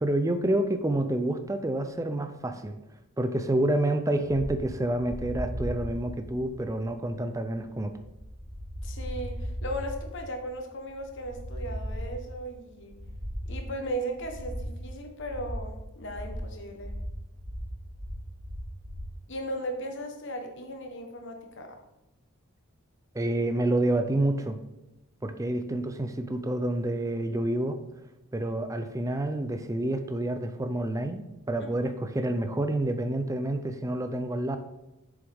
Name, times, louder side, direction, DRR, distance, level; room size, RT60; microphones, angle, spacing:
voice 1, 0.0-2.8 3.2-7.9 23.1-24.6 25.2-27.8 28.3-34.6, right 1 dB, 15° right, 9 dB, 0.5 m, -28 dB
sound 1, 4.2-19.1, equal, 45° right, 2.0 m, -38 dB
voice 2, 8.8-13.0 13.5-16.9 19.3-21.8, right 1 dB, 55° left, 4 dB, 1.1 m, -37 dB
7.2 x 6.9 x 3.5 m, 0.92 s
head